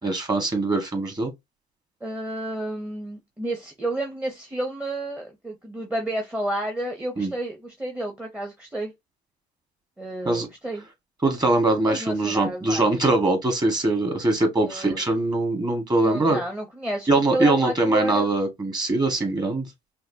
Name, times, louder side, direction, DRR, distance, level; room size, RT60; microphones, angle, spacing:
voice 1, 0.0-1.3 7.2-7.3 10.2-10.5 11.2-16.4 17.1-19.6, right 2 dB, 25° right, 1.6 m, -22 dB
voice 2, 2.0-8.9 10.0-10.8 11.9-12.9 14.6-15.0 16.0-18.3, right 1 dB, 10° right, 0.8 m, -31 dB
5.6 x 2.1 x 2.7 m
cardioid pair, 110°, 17 cm